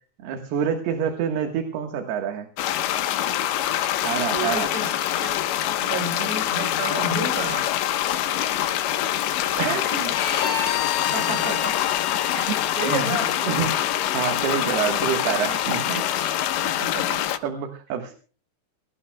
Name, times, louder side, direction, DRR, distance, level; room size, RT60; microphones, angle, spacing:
voice 1, 0.2-2.5 4.0-4.7 9.6-10.1 12.4-13.1 13.4-16.0 17.4-18.1, right 8 dB, 70° right, 5 dB, 3.3 m, -27 dB
sound 1, 2.6-17.4, left 12 dB, 90° left, 3.4 m, -25 dB
voice 2, 4.2-4.9 5.2-7.6 11.1-11.8 12.3-12.5 12.8-13.7 16.6-17.2, right 2 dB, 40° right, 4 dB, 6.8 m, -31 dB
Bowed string instrument, 10.1-16.9, left 9 dB, 55° left, 3.4 m, -32 dB
25.0 x 18.0 x 2.3 m, 0.37 s
omnidirectional pair, 4.9 m